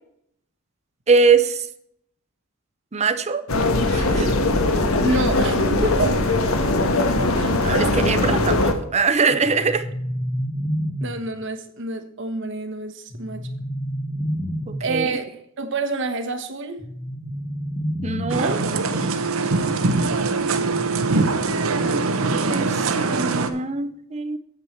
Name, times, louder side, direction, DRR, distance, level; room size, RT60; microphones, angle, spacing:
voice 1, 1.1-1.7 2.9-3.5 3.9-4.4 7.6-9.9 14.7-15.2 18.0-18.6 21.9-22.1 22.5-24.4, right 4 dB, 30° right, 11 dB, 0.6 m, -22 dB
sound 1, 3.5-8.7, left 2 dB, 85° left, 1.4 m, -20 dB
voice 2, 5.0-6.2 7.3-7.6 11.0-13.5 14.8-16.8 19.4-19.6, right 2 dB, 60° right, 8 dB, 1.2 m, -28 dB
sound 2, 9.4-11.4 13.1-15.0 16.8-18.8, equal, 55° left, 2.1 m, -29 dB
sound 3, 18.3-23.5, right 3 dB, 75° right, 0.9 m, -22 dB
8.9 x 7.9 x 4.5 m, 0.70 s
head